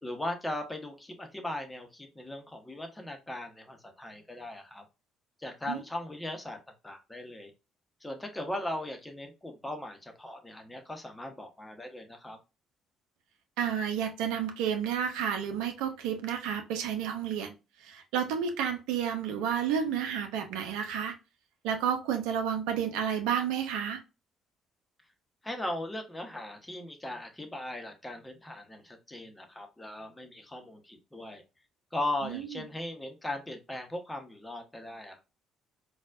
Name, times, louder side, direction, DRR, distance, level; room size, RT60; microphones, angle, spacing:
voice 1, 0.0-4.8 5.4-6.6 6.8-7.5 8.0-12.4 25.4-31.4 31.9-35.2, left 1 dB, 15° left, 4 dB, 1.0 m, -38 dB
voice 2, 13.6-17.5 17.8-21.1 21.6-24.0 32.2-32.6, right 8 dB, 70° right, 6 dB, 0.6 m, -31 dB
4.1 x 2.4 x 2.4 m, 0.28 s
hypercardioid pair, 50°, 0 cm